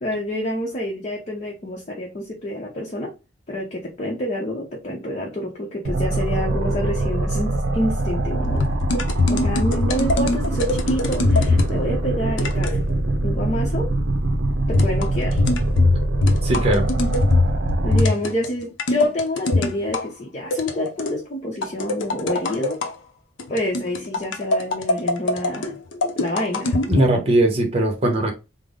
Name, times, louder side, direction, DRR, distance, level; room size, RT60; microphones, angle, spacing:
voice 1, 0.0-3.1 3.5-8.6 9.3-12.8 13.2-13.9 14.7-15.4 17.8-22.8 23.5-25.7 26.1-27.3, left 1 dB, 35° left, 0.7 m, -28 dB
sound 1, 5.8-18.0, right 2 dB, 65° right, 0.6 m, -23 dB
sound 2, 8.4-11.8 12.4-12.8 14.7-20.0 20.5-21.2 21.6-22.9 23.4-27.0, left 2 dB, 75° left, 0.6 m, -22 dB
voice 2, 16.4-16.9 26.9-28.3, right 1 dB, 30° right, 0.9 m, -19 dB
3.5 x 2.0 x 3.6 m
head